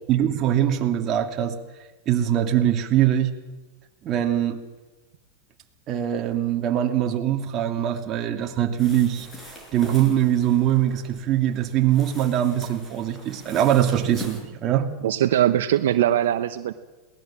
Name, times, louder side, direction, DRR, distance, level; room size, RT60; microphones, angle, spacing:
voice 1, 0.1-1.6 2.1-3.3 4.0-4.6 5.9-9.3 9.7-14.9, right 11 dB, 35° right, 4 dB, 2.5 m, -22 dB
sound 1, 8.8-14.4, equal, 15° left, 6.2 m, -42 dB
voice 2, 15.0-16.7, right 11 dB, 80° right, 10 dB, 0.9 m, -21 dB
22.5 x 17.5 x 7.5 m, 1.2 s
supercardioid pair, 130°, 0 cm